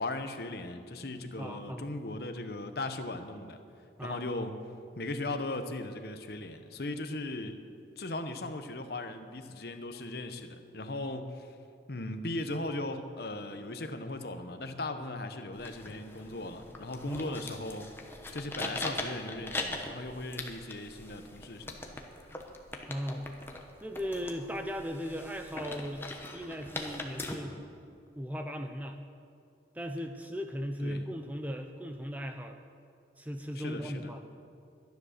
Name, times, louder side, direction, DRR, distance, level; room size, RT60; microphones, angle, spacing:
voice 1, 0.0-3.6 4.0-4.6 5.0-7.6 8.0-11.6 11.9-17.9 18.3-21.9 30.8-31.0 33.5-34.1, left 2 dB, 55° left, 7 dB, 0.9 m, -38 dB
voice 2, 1.4-1.9 4.0-4.3 17.1-17.4 22.9-23.2 23.8-26.1 26.3-27.6 28.2-29.0 29.7-32.7 33.2-34.2, equal, 10° right, 6 dB, 0.5 m, -37 dB
sound 1, 15.5-27.3, left 2 dB, 10° left, 1.0 m, -41 dB
12.5 x 10.5 x 6.6 m, 2.4 s
head